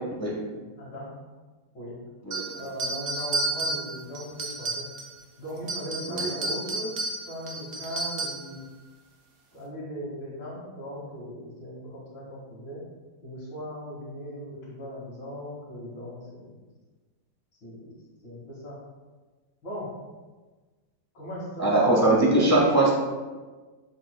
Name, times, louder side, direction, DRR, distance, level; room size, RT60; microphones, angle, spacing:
voice 1, 0.3-1.1 1.7-2.0 2.5-4.9 5.4-6.9 7.2-8.6 9.5-12.8 13.2-16.6 17.6-17.9 18.2-18.8 19.6-19.9 21.1-22.4, equal, 75° left, -11 dB, 2.6 m, -38 dB
sound 1, 2.3-5.2 5.6-8.6, right 2 dB, 50° right, 0.9 m, -32 dB
voice 2, 21.6-22.9, right 2 dB, 15° left, -4 dB, 0.6 m, -21 dB
7.2 x 6.9 x 2.2 m, 1.3 s
omnidirectional pair, 2.1 m